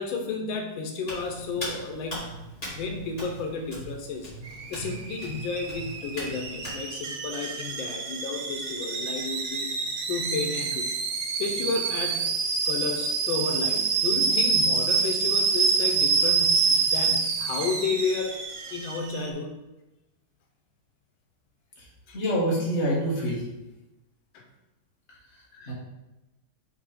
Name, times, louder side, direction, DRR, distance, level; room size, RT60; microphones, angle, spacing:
voice 1, 0.0-2.3 2.7-4.3 4.7-9.7 10.1-11.0 11.4-12.3 12.7-18.4 18.7-19.5 22.1-22.2 24.3-24.4 25.5-25.7, left 4 dB, 90° left, 3 dB, 1.6 m, -32 dB
Hands, 1.0-6.8, equal, 20° left, 1.8 m, -40 dB
Alarm / Boiling, 4.5-19.3, right 5 dB, 60° right, 0.9 m, -27 dB
voice 2, 22.1-23.5 25.3-25.7, equal, 35° left, -5 dB, 1.8 m, -27 dB
5.8 x 3.3 x 5.0 m, 0.98 s
omnidirectional pair, 2.1 m